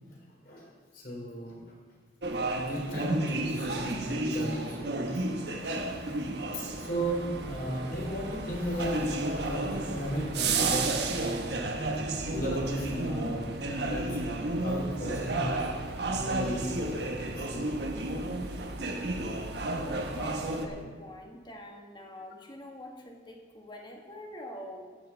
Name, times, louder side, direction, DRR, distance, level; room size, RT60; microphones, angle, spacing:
voice 1, 0.9-1.6 2.3-5.1 5.6-6.0 6.8-11.5 12.2-13.5 13.9-15.6 16.1-17.1 17.4-17.7 18.0-18.3, equal, 55° left, -2 dB, 3.5 m, -36 dB
sound 1, 2.2-20.7, right 2 dB, 65° right, 1.1 m, -32 dB
voice 2, 19.4-25.0, left 1 dB, 25° left, 1 dB, 1.4 m, -45 dB
13.0 x 9.3 x 4.5 m, 1.5 s
head